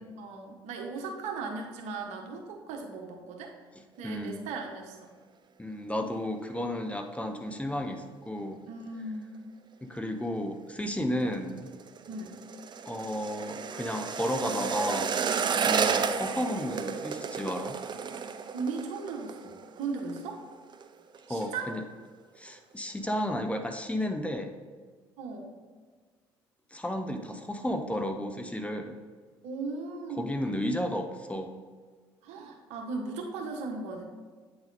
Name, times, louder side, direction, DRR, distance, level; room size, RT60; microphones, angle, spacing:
voice 1, 0.2-3.5 4.0-5.0 8.7-9.5 12.1-12.3 18.5-20.4 21.3-21.8 25.2-25.5 29.4-30.5 32.2-34.0, right 4 dB, 65° right, 2 dB, 1.2 m, -37 dB
voice 2, 4.0-4.4 5.6-8.6 9.8-11.7 12.9-15.1 15.6-17.8 21.3-21.8 22.4-24.5 26.7-29.0 30.2-31.5, left 1 dB, 10° left, 5 dB, 0.8 m, -33 dB
sound 1, 11.2-20.3 20.5-20.9 21.1-21.7 22.0-22.1, right 6 dB, 40° right, 0.6 m, -32 dB
8.6 x 4.0 x 4.1 m, 1.6 s
hypercardioid pair, 55°, 12 cm